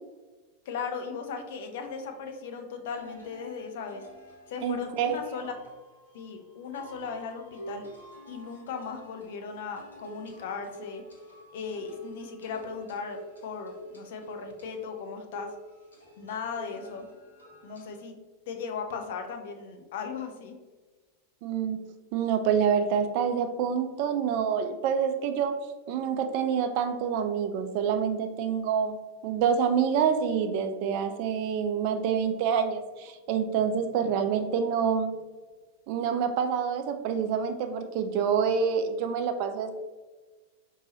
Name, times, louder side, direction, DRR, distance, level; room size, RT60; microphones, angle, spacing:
voice 1, 0.7-4.0 4.5-5.5 6.1-7.9 8.3-11.0 11.5-15.5 16.2-17.1 17.6-18.2 18.5-20.6, left 5 dB, 55° left, 5 dB, 0.6 m, -37 dB
sound 1, 2.1-2.2 2.9-18.0, equal, 75° left, 1.0 m, -48 dB
voice 2, 4.6-5.2 21.4-21.8 22.1-25.5 25.9-29.0 29.2-35.1 35.9-39.7, right 7 dB, 45° right, 7 dB, 0.4 m, -27 dB
5.2 x 2.7 x 2.9 m, 1.3 s
figure-of-eight pair, 90°, 0 cm